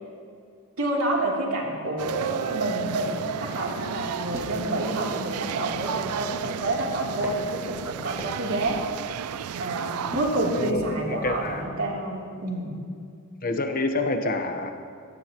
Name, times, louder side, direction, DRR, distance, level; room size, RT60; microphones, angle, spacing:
voice 1, 0.8-8.8 9.6-12.7, right 2 dB, 70° right, -3 dB, 3.1 m, -28 dB
sound 1, 2.0-10.7, right 8 dB, 85° right, 0.4 m, -33 dB
sound 2, 4.2-11.6, equal, 15° right, 2.1 m, -43 dB
voice 2, 11.1-11.6 13.4-14.7, left 2 dB, 40° left, 6 dB, 1.0 m, -27 dB
24.0 x 16.5 x 3.0 m, 2.2 s
head